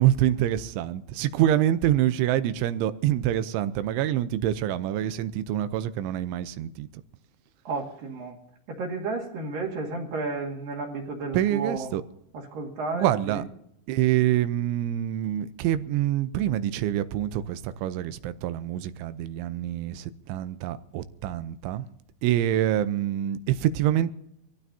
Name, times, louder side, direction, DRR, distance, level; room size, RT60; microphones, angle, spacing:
voice 1, 0.0-6.9 11.3-12.0 12.9-13.4 13.9-21.9 22.2-24.1, right 12 dB, 85° right, 3.2 m, -26 dB
voice 2, 7.6-8.4 8.7-11.9 12.5-13.4, right 3 dB, 55° right, 3.3 m, -32 dB
24.5 x 15.5 x 2.8 m
omnidirectional pair, 5.3 m